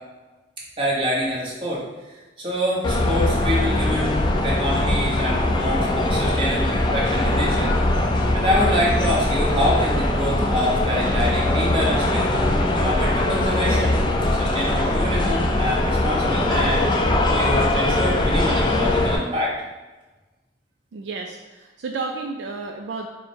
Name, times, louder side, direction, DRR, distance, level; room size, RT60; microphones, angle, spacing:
voice 1, 0.8-4.2 4.4-12.3 12.7-14.0 14.3-19.5, equal, 30° right, -5 dB, 1.1 m, -26 dB
sound 1, 2.8-19.2, left 1 dB, 25° left, 0.3 m, -21 dB
voice 2, 20.9-23.1, right 4 dB, 65° right, 2 dB, 0.3 m, -31 dB
4.5 x 2.1 x 4.4 m, 1.2 s
head